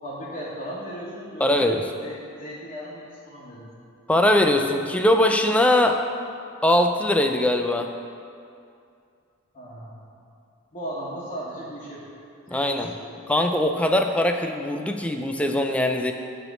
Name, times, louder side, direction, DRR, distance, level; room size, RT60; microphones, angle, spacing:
voice 1, 0.0-1.7 2.0-3.7 9.5-10.1 10.7-13.2, equal, 30° left, -10 dB, 1.3 m, -37 dB
voice 2, 1.4-1.8 4.1-6.0 6.6-7.9 12.5-12.9 13.3-16.1, left 1 dB, 5° left, 5 dB, 0.3 m, -21 dB
8.4 x 3.5 x 6.8 m, 2.5 s
head